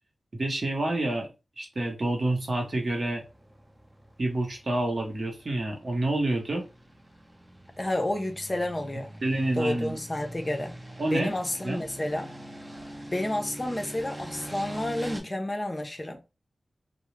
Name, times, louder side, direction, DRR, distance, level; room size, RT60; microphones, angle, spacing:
voice 1, 0.3-1.3 1.6-3.2 4.2-6.7 9.2-10.0 11.0-11.3 11.6-11.8, right 1 dB, 55° right, 0.8 m, -28 dB
sound 1, 2.4-15.2, right 1 dB, 20° right, 0.6 m, -44 dB
voice 2, 7.8-9.2 9.6-10.8 11.1-12.3 13.1-16.2, left 1 dB, 30° left, 0.5 m, -30 dB
2.3 x 2.0 x 3.0 m
cardioid pair, 45°, 0 cm